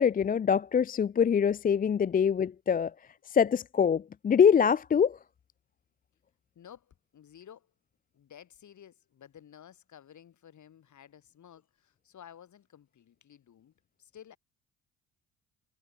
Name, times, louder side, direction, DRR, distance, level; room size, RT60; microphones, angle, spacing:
voice 1, 0.0-2.9 3.3-5.2, left 7 dB, 20° left, 0.5 m, -24 dB
voice 2, 6.5-7.7 8.1-14.4, left 9 dB, 45° left, 4.7 m, -53 dB
hypercardioid pair, 55°, 40 cm